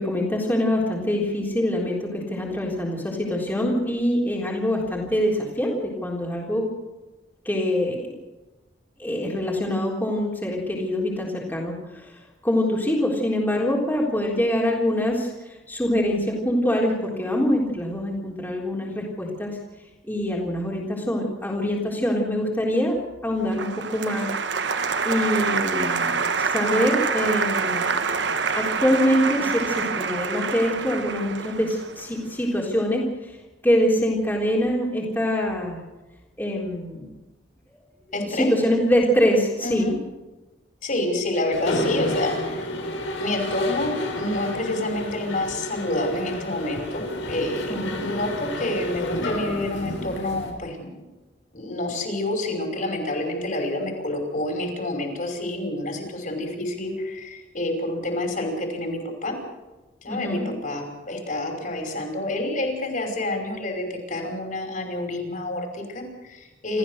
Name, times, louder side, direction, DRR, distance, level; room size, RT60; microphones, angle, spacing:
voice 1, 0.0-6.7 7.5-8.2 9.0-12.1 12.4-19.6 20.0-24.3 25.0-27.9 28.6-33.0 33.6-35.8 36.4-37.1 38.3-39.9 47.7-48.1 60.1-60.5 66.7-66.8, equal, 10° left, -3 dB, 3.7 m, -24 dB
Applause, 23.5-32.6, right 5 dB, 65° right, 1.2 m, -26 dB
voice 2, 38.1-38.5 39.6-40.0 40.8-42.6 43.2-50.9 51.5-59.3 60.0-66.8, left 1 dB, 45° left, 3 dB, 5.6 m, -28 dB
Mechanisms, 41.5-50.5, left 1 dB, 80° left, 5.5 m, -30 dB
27.5 x 15.0 x 6.6 m, 1.1 s
head